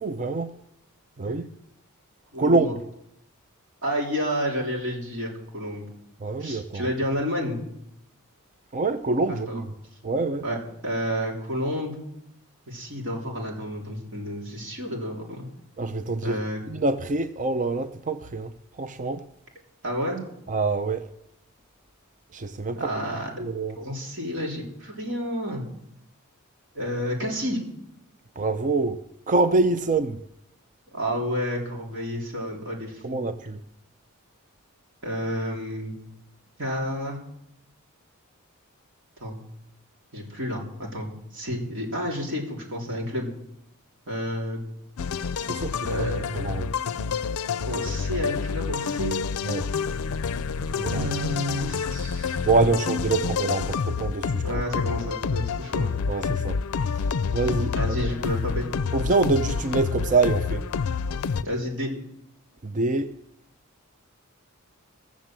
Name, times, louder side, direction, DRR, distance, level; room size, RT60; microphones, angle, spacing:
voice 1, 0.0-0.5 1.2-1.5 2.4-2.8 6.2-6.9 8.7-9.7 10.0-10.5 15.8-19.3 20.5-21.1 22.3-22.9 23.3-23.8 28.4-30.2 33.0-33.6 45.4-46.7 49.5-49.7 50.6-51.2 52.4-54.4 56.1-56.6 56.9-58.0 58.9-60.7 62.6-63.2, right 3 dB, 35° right, 0.6 m, -26 dB
voice 2, 2.3-2.7 3.8-5.9 6.4-7.6 9.5-9.6 10.4-10.6 10.8-12.0 12.7-15.5 16.2-16.6 19.8-20.2 22.8-23.3 23.8-25.6 26.7-27.6 30.9-33.3 35.0-36.0 36.6-37.2 39.2-39.4 40.1-43.3 44.1-44.6 45.9-46.2 47.7-49.2 50.9-52.4 54.4-55.9 57.7-58.7 61.4-61.9, equal, 60° right, 3.5 m, -30 dB
sound 1, 45.0-61.4, left 5 dB, 85° left, 0.5 m, -28 dB
16.5 x 7.2 x 7.5 m
head